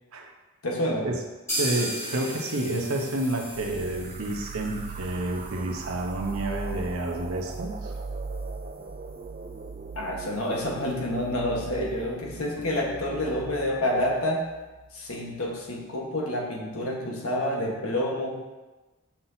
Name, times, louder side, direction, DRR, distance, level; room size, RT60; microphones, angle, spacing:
voice 1, 0.6-1.1 9.9-14.5 14.9-18.4, left 1 dB, 75° left, -1 dB, 1.4 m, -28 dB
sound 1, 1.5-9.2 9.5-9.6 9.9-10.0 10.4-10.5, right 1 dB, 10° left, 1.9 m, -38 dB
voice 2, 1.6-7.9, right 1 dB, 80° right, 2 dB, 1.0 m, -29 dB
sound 2, 3.5-14.9, right 4 dB, 35° right, 0.3 m, -39 dB
7.5 x 5.8 x 2.8 m, 1.2 s
head